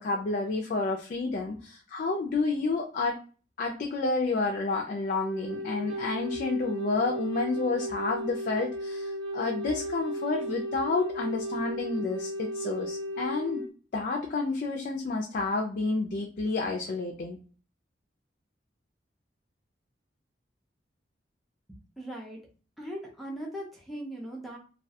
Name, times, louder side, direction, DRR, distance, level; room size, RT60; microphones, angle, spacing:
voice 1, 0.0-3.2 3.6-13.6 13.9-17.4, left 3 dB, 50° left, 1 dB, 0.4 m, -30 dB
Wind instrument woodwind instrument, 5.1-13.7, equal, 75° right, 0.5 m, -35 dB
voice 2, 21.7-22.4 22.8-24.6, right 1 dB, ahead, -4 dB, 0.5 m, -39 dB
2.3 x 2.1 x 2.7 m, 0.38 s
head